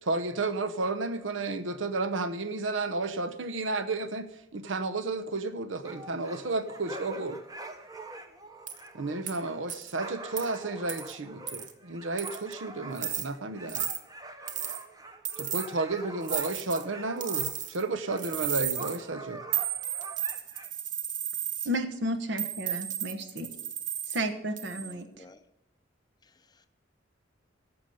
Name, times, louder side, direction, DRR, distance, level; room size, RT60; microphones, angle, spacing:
voice 1, 0.0-7.4 8.9-13.9 15.4-19.4, right 3 dB, 80° right, 0.9 m, -32 dB
sound 1, 5.8-17.7 18.0-18.3 18.8-20.7, right 2 dB, 20° right, 0.9 m, -45 dB
sound 2, 8.7-8.8 9.3-9.4 9.7-9.9 10.4-10.5 10.9-11.1 11.5-11.7 12.2-12.5 12.9-13.3 13.7-14.0 14.5-14.8 15.2-15.7 16.2-16.8 17.2-17.8 18.2-19.0 19.5-21.7 22.4-24.2 24.6-24.9, right 9 dB, 45° right, 0.9 m, -33 dB
voice 2, 21.6-23.5 24.1-25.1, equal, 65° right, 1.2 m, -32 dB
voice 3, 24.7-25.4 26.2-26.7, left 2 dB, 20° left, 0.6 m, -55 dB
11.5 x 7.1 x 7.8 m
head